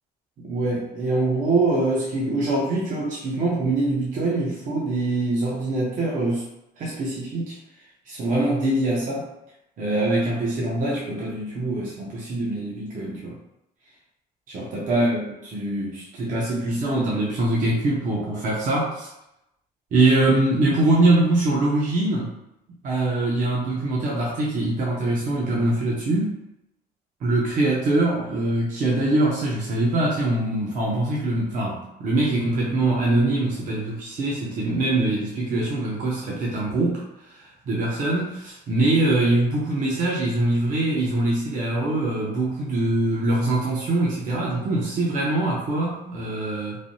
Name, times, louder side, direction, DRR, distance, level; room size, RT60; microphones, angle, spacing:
voice 1, 0.4-6.4 6.8-7.6 8.1-9.3 9.8-13.4 14.5-19.1 19.9-22.3 22.8-26.3 27.2-46.8, right 2 dB, 50° right, -4 dB, 0.7 m, -23 dB
3.2 x 2.1 x 2.6 m, 0.85 s
cardioid pair, 110°, 17 cm